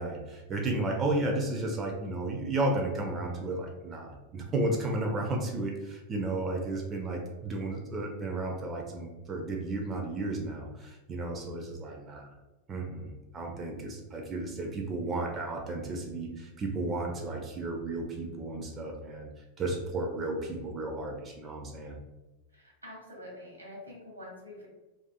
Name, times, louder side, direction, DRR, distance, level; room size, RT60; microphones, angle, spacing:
voice 1, 0.0-12.3 12.7-19.3 19.6-22.0, right 2 dB, 25° right, 2 dB, 0.4 m, -33 dB
voice 2, 22.5-24.7, left 1 dB, 85° right, -3 dB, 0.8 m, -46 dB
2.4 x 2.4 x 2.3 m, 1.1 s
figure-of-eight pair, 90°, 0 cm